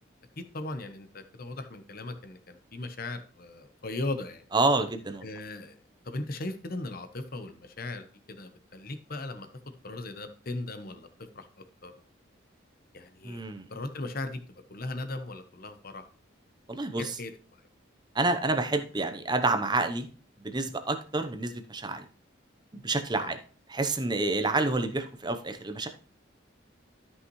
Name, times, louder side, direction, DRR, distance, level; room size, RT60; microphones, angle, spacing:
voice 1, 0.4-4.4 5.2-5.8 6.0-9.5 9.8-11.9 12.9-13.4 13.7-14.4 14.7-16.0 17.0-17.3 23.2-23.3, left 2 dB, 50° left, 8 dB, 1.0 m, -38 dB
voice 2, 4.5-5.3 13.2-13.6 16.7-17.1 18.1-20.1 20.4-22.0 22.7-23.4 23.7-25.9, right 2 dB, 20° right, 8 dB, 0.8 m, -28 dB
13.0 x 5.7 x 3.1 m, 0.42 s
head